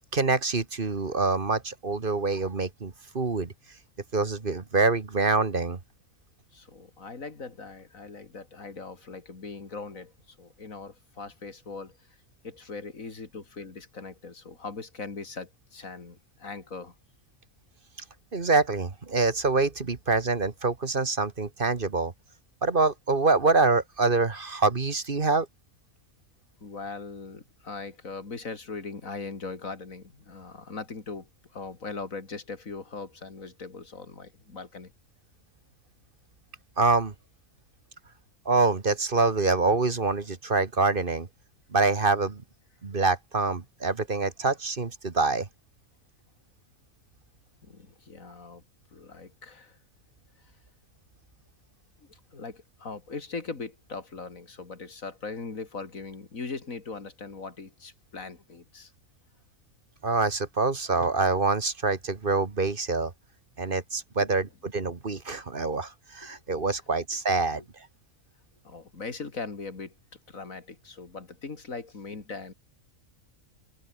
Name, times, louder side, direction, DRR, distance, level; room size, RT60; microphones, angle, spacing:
voice 1, 0.1-3.5 4.1-5.8 18.3-22.1 22.6-25.5 36.8-37.1 38.5-41.3 41.7-42.4 42.8-45.5 60.0-63.1 63.6-67.6, right 3 dB, 40° right, 1.8 m, -25 dB
voice 2, 6.5-10.1 10.4-11.9 12.4-16.9 26.6-34.9 47.6-48.6 48.9-49.7 52.1-58.9 66.3-66.4 67.5-67.6 68.6-69.9 70.3-72.5, left 4 dB, 85° left, 3.2 m, -40 dB
omnidirectional pair, 1.4 m